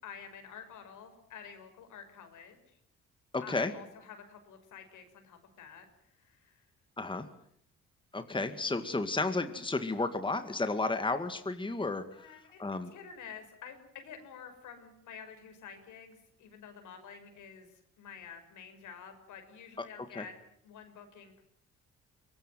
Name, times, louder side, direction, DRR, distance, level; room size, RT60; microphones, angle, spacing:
voice 1, 0.0-2.8 3.4-5.9 6.2-6.7 12.1-12.6 12.9-20.3 20.6-21.4, left 7 dB, 80° left, 7 dB, 5.8 m, -49 dB
voice 2, 3.3-3.7 7.0-7.3 8.1-12.3 12.6-12.9 20.2-20.3, left 3 dB, 15° left, 9 dB, 2.1 m, -32 dB
23.5 x 20.0 x 9.3 m, 0.68 s
cardioid pair, 90°, 30 cm